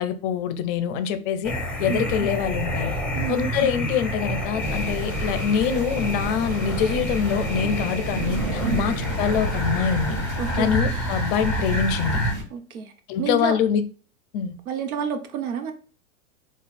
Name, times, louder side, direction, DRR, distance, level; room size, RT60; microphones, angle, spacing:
voice 1, 0.0-1.5 1.8-2.9 3.3-10.2 10.6-12.2 13.1-13.8 14.3-14.5, left 7 dB, 40° left, 0.5 m, -25 dB
sound 1, 1.4-12.3, equal, 5° left, 0.6 m, -28 dB
voice 2, 3.1-3.5 8.6-8.8 10.4-10.8 12.5-12.9 13.2-13.6 14.7-15.7, right 6 dB, 80° right, 0.9 m, -29 dB
sound 2, 4.6-12.4, right 1 dB, 30° right, 1.5 m, -32 dB
sound 3, 4.6-10.2, right 2 dB, 50° right, 2.0 m, -36 dB
3.9 x 2.4 x 4.1 m
hypercardioid pair, 125°, 42 cm